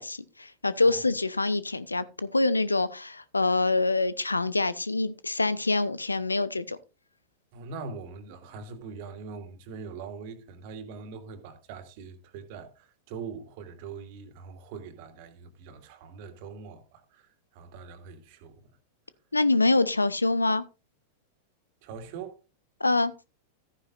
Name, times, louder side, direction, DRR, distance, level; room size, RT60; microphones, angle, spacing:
voice 1, 0.0-6.8 19.3-20.6 22.8-23.1, left 2 dB, 80° left, 0.8 m, -25 dB
voice 2, 7.5-18.8 21.8-22.4, right 5 dB, 45° right, 2.4 m, -42 dB
14.0 x 9.9 x 2.5 m
figure-of-eight pair, 90°, 0 cm